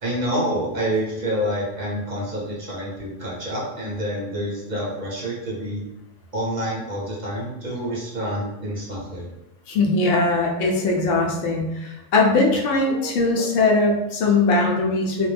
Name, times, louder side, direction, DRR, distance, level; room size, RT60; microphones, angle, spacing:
voice 1, 0.0-5.8 6.3-9.3 12.8-13.4, equal, 40° right, -6 dB, 0.8 m, -28 dB
voice 2, 9.7-15.3, left 3 dB, 80° left, 0 dB, 0.9 m, -20 dB
2.3 x 2.0 x 3.2 m, 0.90 s
omnidirectional pair, 1.3 m